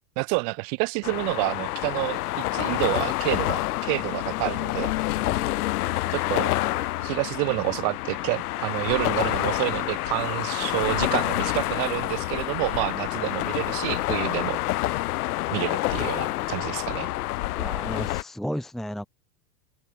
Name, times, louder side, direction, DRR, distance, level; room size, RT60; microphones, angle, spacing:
voice 1, 0.2-4.9 6.1-6.5 7.0-14.6 15.5-17.1, right 40 dB or more, 25° right, 0.7 m, -28 dB
sound 1, 1.0-18.2, left 17 dB, 70° left, 0.9 m, -28 dB
voice 2, 10.6-11.0 17.5-19.1, equal, ahead, 1.3 m, -34 dB
open air
supercardioid pair, 170°, 47 cm